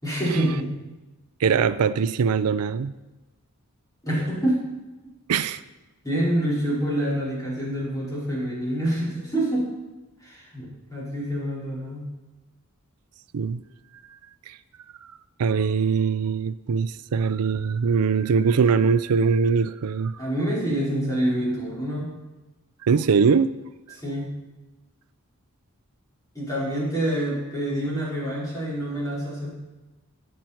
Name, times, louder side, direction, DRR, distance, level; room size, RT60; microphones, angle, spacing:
voice 1, 0.0-0.7 4.0-4.6 6.0-9.7 10.2-12.1 20.2-22.1 24.0-24.3 26.3-29.5, right 1 dB, 15° left, -7 dB, 4.7 m, -26 dB
voice 2, 1.4-2.9 5.3-5.6 13.3-13.6 14.5-14.6 15.4-20.2 22.8-23.5, right 5 dB, 85° right, 14 dB, 0.5 m, -22 dB
13.5 x 9.1 x 4.5 m, 1.1 s
head